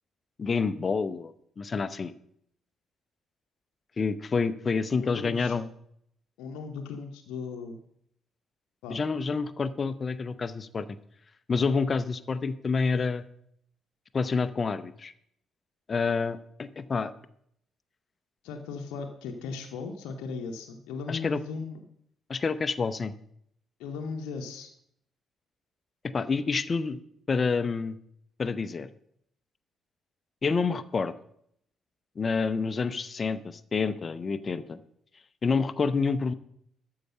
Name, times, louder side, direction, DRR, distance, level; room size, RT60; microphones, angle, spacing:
voice 1, 0.4-2.1 4.0-5.7 8.9-10.9 11.5-13.2 14.1-15.1 15.9-17.1 21.1-21.4 22.3-23.1 26.1-27.0 27.3-28.0 28.4-28.9 30.4-31.1 32.2-34.8 35.4-36.3, left 4 dB, 35° left, 14 dB, 0.6 m, -28 dB
voice 2, 5.0-5.5 6.4-7.8 8.8-9.0 18.4-21.8 23.8-24.7, left 4 dB, 65° left, 3 dB, 0.8 m, -37 dB
13.0 x 4.8 x 6.5 m, 0.70 s
figure-of-eight pair, 40°, 0 cm